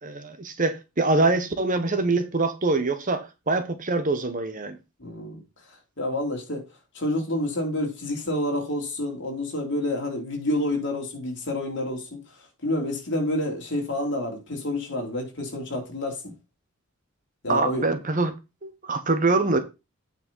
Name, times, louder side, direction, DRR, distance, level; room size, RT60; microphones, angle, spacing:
voice 1, 0.0-4.8 17.5-18.3 18.6-19.6, right 3 dB, 35° right, 1.0 m, -24 dB
voice 2, 5.0-5.4 6.0-6.6 6.9-12.2 12.6-16.3 17.4-17.9, left 1 dB, 55° left, 3.1 m, -28 dB
8.8 x 4.3 x 5.3 m
head